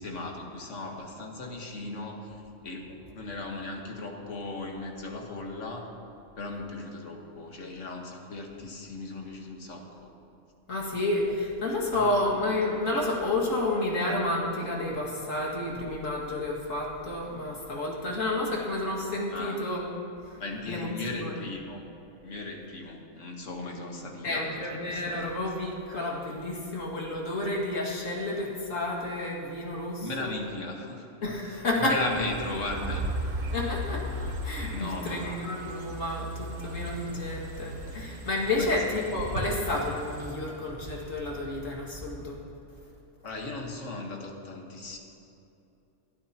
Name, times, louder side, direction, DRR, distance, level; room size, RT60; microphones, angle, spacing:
voice 1, 0.0-2.9 3.1-5.9 6.4-10.1 11.9-12.4 19.3-19.6 20.4-21.8 22.2-25.3 30.0-31.1 31.8-33.0 34.7-35.4 38.6-38.8 43.2-45.0, left 2 dB, 75° left, 1 dB, 1.8 m, -37 dB
voice 2, 10.7-20.4 20.7-21.4 24.2-30.3 31.2-32.0 33.5-34.1 34.4-42.4, left 2 dB, 90° left, -3 dB, 2.5 m, -30 dB
sound 1, 32.0-40.3, equal, 85° right, 1.7 m, -36 dB
sound 2, 37.9-38.0 39.9-42.3 42.7-42.8 43.6-43.7, equal, 35° right, 1.7 m, -47 dB
21.5 x 12.5 x 2.9 m, 2.8 s
omnidirectional pair, 1.3 m